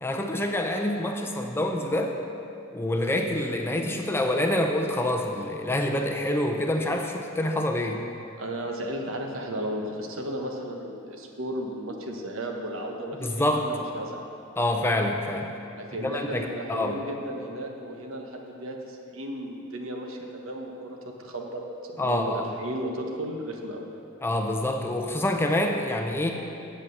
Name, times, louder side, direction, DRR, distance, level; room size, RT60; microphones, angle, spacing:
voice 1, 0.0-2.2 2.7-8.0 13.2-13.7 14.6-15.5 16.0-17.0 22.0-22.5 24.2-26.3, left 1 dB, 10° left, 2 dB, 0.5 m, -26 dB
voice 2, 8.4-14.3 15.7-23.9, right 1 dB, 75° right, 2 dB, 1.1 m, -35 dB
8.1 x 7.4 x 6.6 m, 2.7 s
head